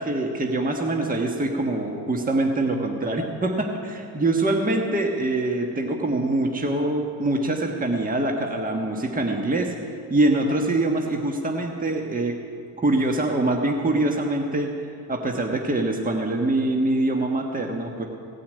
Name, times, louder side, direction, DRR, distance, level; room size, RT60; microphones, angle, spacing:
voice 1, 0.0-9.7 10.1-12.3 12.8-14.7 15.1-18.0, right 2 dB, 20° right, 1 dB, 1.5 m, -24 dB
17.0 x 5.7 x 8.7 m, 2.4 s
supercardioid pair, 75°, 46 cm